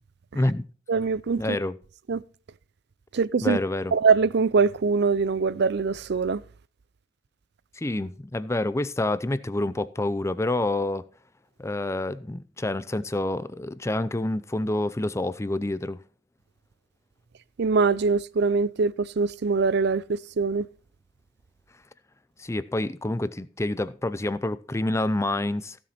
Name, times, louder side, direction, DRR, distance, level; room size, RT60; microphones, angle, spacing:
voice 1, 0.3-0.7 1.4-1.8 3.4-3.9 7.7-11.0 11.6-16.0 22.4-25.8, left 2 dB, 15° left, 0.5 m, -27 dB
voice 2, 0.9-1.6 2.1-2.2 3.1-3.6 3.9-6.4 17.6-20.7, right 4 dB, 55° right, 0.5 m, -23 dB
15.5 x 7.2 x 4.2 m
head